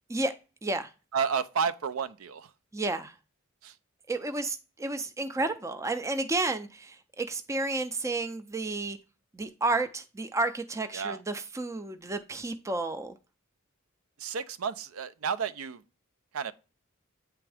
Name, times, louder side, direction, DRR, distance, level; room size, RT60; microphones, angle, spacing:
voice 1, 1.1-2.5 3.6-3.7 10.9-11.2 14.2-15.8 16.3-16.5, right 6 dB, 75° right, 0.5 m, -31 dB
voice 2, 2.7-3.1 4.1-9.0 9.3-13.1, right 2 dB, 15° right, 0.4 m, -31 dB
8.6 x 3.5 x 3.3 m
head